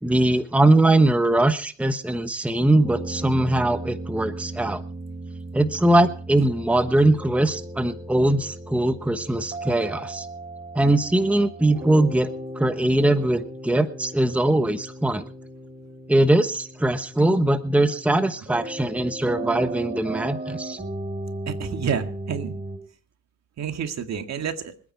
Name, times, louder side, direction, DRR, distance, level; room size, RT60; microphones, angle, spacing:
voice 1, 0.0-4.8 5.5-10.3 10.7-12.3 12.5-15.2 16.1-20.8, right 1 dB, 5° right, 9 dB, 1.1 m, -21 dB
sound 1, 2.8-22.8, right 2 dB, 25° right, 4.4 m, -36 dB
voice 2, 21.5-22.5 23.6-24.7, right 7 dB, 60° right, 6 dB, 2.1 m, -29 dB
25.5 x 9.4 x 4.5 m, 0.43 s
cardioid pair, 90°, 30 cm